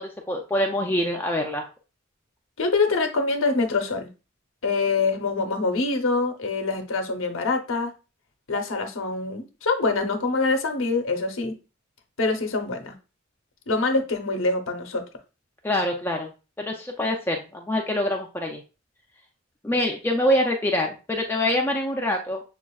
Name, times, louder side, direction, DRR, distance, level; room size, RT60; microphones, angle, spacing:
voice 1, 0.0-1.7 15.6-16.3 16.6-18.6 19.6-22.4, left 1 dB, 10° left, 2 dB, 0.4 m, -25 dB
voice 2, 2.6-4.1 4.6-7.9 8.5-11.6 12.2-12.9 13.7-15.0, left 3 dB, 75° left, 4 dB, 0.8 m, -25 dB
7.1 x 2.4 x 2.3 m, 0.32 s
head